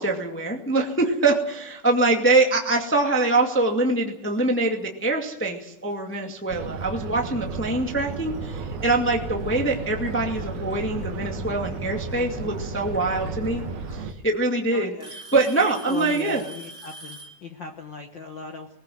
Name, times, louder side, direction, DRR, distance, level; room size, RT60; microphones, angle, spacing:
voice 1, 0.0-13.6 13.9-14.9 15.3-16.4, right 2 dB, 5° left, 1 dB, 1.2 m, -24 dB
Alarm / Tick-tock, 3.5-3.7 4.6-4.7 5.5-5.6 7.2-7.3 8.6-8.7 9.9-10.4 12.1-12.2 13.4-13.5 13.9-14.3 15.0-17.4, right 1 dB, 15° right, 5.7 m, -43 dB
sound 1, 6.5-14.1, right 5 dB, 85° right, 3.3 m, -34 dB
sound 2, 8.3-14.1, left 2 dB, 60° left, 4.9 m, -40 dB
voice 2, 14.7-15.1 15.5-18.7, left 4 dB, 75° left, 3 dB, 1.0 m, -37 dB
20.5 x 20.0 x 7.8 m, 0.86 s
omnidirectional pair, 4.1 m